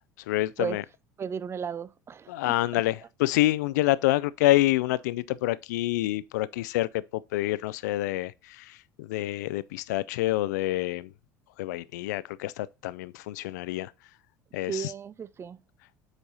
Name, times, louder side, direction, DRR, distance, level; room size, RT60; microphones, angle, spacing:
voice 1, 0.3-0.8 2.3-7.0 7.3-8.3 8.6-11.1 11.6-13.9 14.5-14.8, left 17 dB, 65° left, 0.4 m, -27 dB
voice 2, 1.2-2.8 14.7-15.6, right 7 dB, 25° right, 0.5 m, -35 dB
8.0 x 5.3 x 2.8 m
figure-of-eight pair, 65°, 10 cm